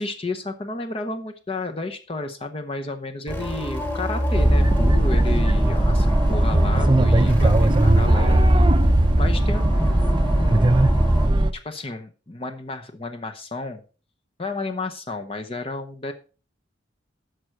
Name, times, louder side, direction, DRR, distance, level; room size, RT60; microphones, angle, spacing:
voice 1, 0.0-8.7 9.1-13.8 14.4-16.1, left 2 dB, 30° left, 6 dB, 0.8 m, -32 dB
sound 1, 3.3-11.3, equal, 10° left, 2.1 m, -23 dB
sound 2, 4.3-11.5, right 1 dB, 25° right, 0.6 m, -19 dB
11.5 x 6.3 x 4.5 m, 0.37 s
head